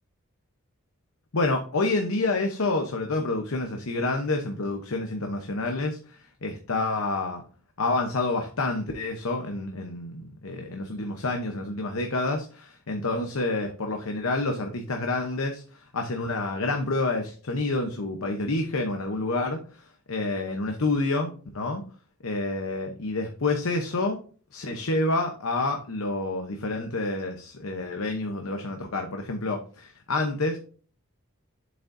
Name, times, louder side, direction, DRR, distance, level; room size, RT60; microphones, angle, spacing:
voice 1, 1.3-7.4 7.8-21.8 22.2-24.2 24.5-30.6, left 2 dB, 75° left, 4 dB, 0.9 m, -28 dB
8.1 x 7.7 x 2.6 m, 0.41 s
head